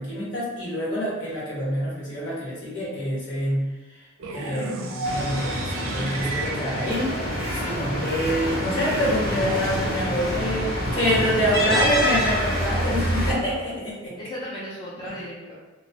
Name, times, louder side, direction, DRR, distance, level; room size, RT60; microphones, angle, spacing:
voice 1, 0.0-3.6 4.3-7.2 7.5-14.1, equal, 70° left, -8 dB, 1.3 m, -26 dB
sound 1, 4.2-8.2, right 3 dB, 85° right, 0.4 m, -34 dB
sound 2, 5.0-13.3, equal, 50° left, 0.9 m, -26 dB
sound 3, 6.9-14.0, right 1 dB, 30° right, 0.6 m, -38 dB
voice 2, 11.6-12.2 14.1-15.6, equal, 25° left, -7 dB, 0.5 m, -35 dB
2.9 x 2.1 x 2.7 m, 1.2 s
head